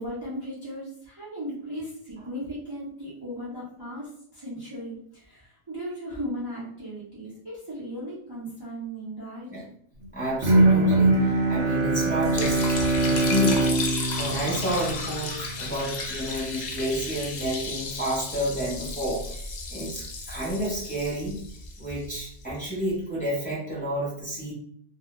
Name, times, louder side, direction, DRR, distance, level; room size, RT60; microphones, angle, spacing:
voice 1, 0.0-9.5, equal, 30° right, -8 dB, 0.4 m, -36 dB
voice 2, 10.1-19.4 19.7-21.4 21.8-24.5, equal, 10° left, -8 dB, 0.8 m, -30 dB
Bowed string instrument, 10.4-15.5, right 2 dB, 90° right, 0.9 m, -22 dB
Liquid, 12.2-22.4, left 3 dB, 65° left, 0.4 m, -34 dB
2.1 x 2.1 x 3.0 m, 0.66 s
omnidirectional pair, 1.2 m